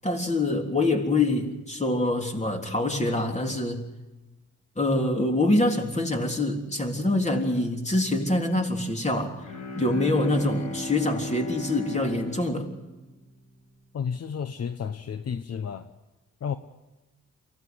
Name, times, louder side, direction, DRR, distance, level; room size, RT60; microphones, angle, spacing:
voice 1, 0.0-3.8 4.8-9.3 9.8-12.7, left 2 dB, 25° left, 3 dB, 3.6 m, -25 dB
Bowed string instrument, 9.4-13.7, left 2 dB, 85° left, 6.8 m, -36 dB
voice 2, 13.9-15.9 16.4-16.6, left 7 dB, 55° left, 10 dB, 1.0 m, -31 dB
24.0 x 16.0 x 7.8 m, 1.1 s
cardioid pair, 75°, 30 cm